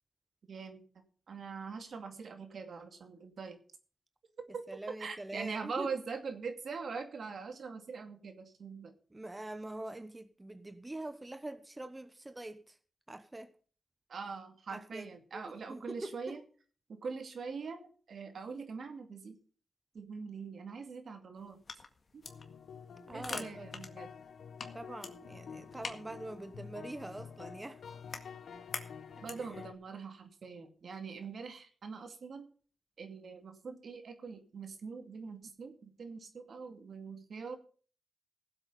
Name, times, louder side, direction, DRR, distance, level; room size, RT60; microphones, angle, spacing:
voice 1, 0.5-0.8 1.3-3.6 4.5-4.6 5.0-8.9 14.1-16.4 16.9-19.4 19.9-21.6 22.1-22.2 23.1-24.1 29.1-32.5 33.0-37.6, right 5 dB, 70° right, 2.3 m, -43 dB
voice 2, 4.7-5.9 9.1-12.8 13.1-13.5 14.7-15.1 15.3-16.4 23.1-23.7 24.7-27.8 29.4-29.5, right 1 dB, 20° right, 1.0 m, -44 dB
sound 1, 21.4-29.6, left 4 dB, 55° left, 1.8 m, -47 dB
sound 2, 22.2-29.7, left 6 dB, 85° left, 1.2 m, -49 dB
16.5 x 8.0 x 5.5 m
cardioid pair, 80°, 0 cm